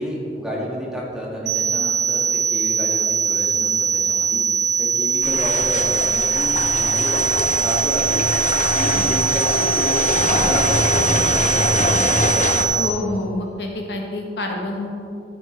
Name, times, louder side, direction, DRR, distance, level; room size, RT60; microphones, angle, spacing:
voice 1, 0.0-4.4 4.8-7.2 7.6-8.0 8.7-11.8 12.2-12.6, equal, 5° right, -6 dB, 1.9 m, -30 dB
sound 1, 1.5-12.9, right 7 dB, 85° right, 1.0 m, -21 dB
sound 2, 5.2-12.6, left 2 dB, 45° left, 0.7 m, -23 dB
voice 2, 12.8-14.9, left 1 dB, 65° left, 1 dB, 1.1 m, -27 dB
13.0 x 7.5 x 3.3 m, 2.7 s
head